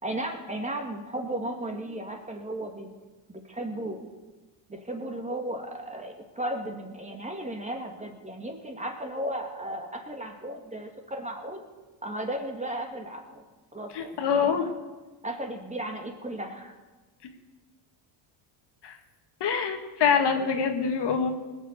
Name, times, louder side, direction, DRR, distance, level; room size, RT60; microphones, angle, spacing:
voice 1, 0.0-2.9 3.3-4.1 4.7-11.6 12.0-13.4 13.7-14.7 15.2-16.7 20.3-20.5, right 1 dB, 15° right, 4 dB, 2.1 m, -35 dB
voice 2, 13.9-14.7 18.8-19.0 19.4-21.3, left 6 dB, 55° left, 5 dB, 1.9 m, -25 dB
19.5 x 7.4 x 8.2 m, 1.2 s
cardioid pair, 105°, 50 cm